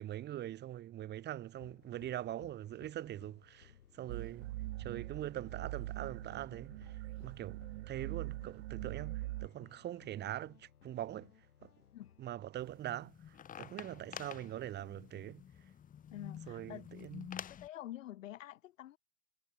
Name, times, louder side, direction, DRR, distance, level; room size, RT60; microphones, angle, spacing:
voice 1, 0.0-4.5 4.8-11.3 11.6-11.7 12.2-15.4 16.5-17.4, right 12 dB, 20° right, 5.0 m, -43 dB
sound 1, 1.6-12.3, left 8 dB, 80° left, 7.5 m, -62 dB
sound 2, 4.1-9.5, right 18 dB, 45° right, 2.1 m, -43 dB
sound 3, 12.6-17.7, left 9 dB, 20° left, 7.4 m, -49 dB
voice 2, 16.1-16.8 17.5-19.0, left 13 dB, 60° left, 3.2 m, -47 dB
hypercardioid pair, 140°, 45 cm